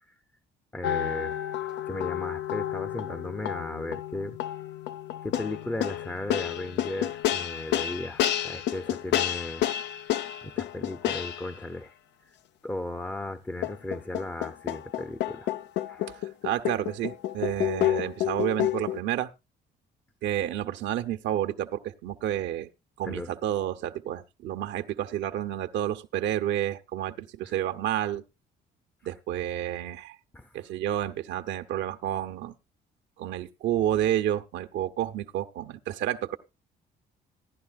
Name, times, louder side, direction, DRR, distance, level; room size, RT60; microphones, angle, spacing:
voice 1, 0.7-1.4 1.9-4.4 5.2-9.7 10.0-11.9 12.6-15.5 15.9-16.2 23.0-23.3 27.4-27.5 30.3-30.5, left 2 dB, 10° left, 0.6 m, -36 dB
sound 1, 0.8-11.6 13.6-19.0, left 12 dB, 75° left, 0.5 m, -30 dB
voice 2, 16.4-19.3 20.2-22.7 23.0-28.2 29.1-30.2 30.5-32.5 33.2-36.4, right 11 dB, 80° right, 0.9 m, -30 dB
15.5 x 11.5 x 2.4 m
cardioid pair, 110°, 18 cm